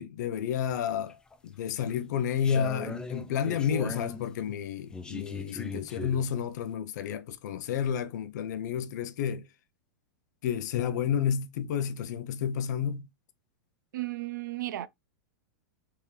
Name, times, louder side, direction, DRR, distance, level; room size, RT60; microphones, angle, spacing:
voice 1, 0.0-9.5 10.4-13.1, left 8 dB, 65° left, 0.6 m, -31 dB
sound 1, 0.7-1.3 1.9-4.3 4.9-6.3, left 3 dB, 10° left, 0.3 m, -39 dB
voice 2, 13.9-14.9, right 16 dB, 80° right, 0.4 m, -34 dB
3.6 x 3.2 x 2.8 m
supercardioid pair, 145°, 10 cm